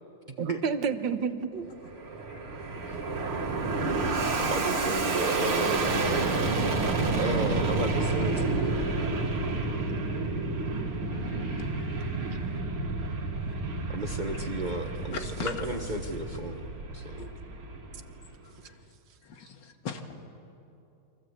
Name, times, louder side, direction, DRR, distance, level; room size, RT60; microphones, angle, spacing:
voice 1, 0.4-1.7, right 6 dB, 65° right, 9 dB, 1.8 m, -30 dB
Fixed-wing aircraft airplane, 1.7-18.3, right 3 dB, 85° right, 3.2 m, -30 dB
voice 2, 4.4-5.8 7.1-8.9 13.9-16.7 16.9-17.3, right 2 dB, 30° right, 3 dB, 1.1 m, -34 dB
voice 3, 11.1-12.6 15.1-15.5 17.2-17.3 19.3-20.1, left 6 dB, 60° left, 5 dB, 2.4 m, -41 dB
29.5 x 23.5 x 8.2 m, 2.8 s
omnidirectional pair, 2.3 m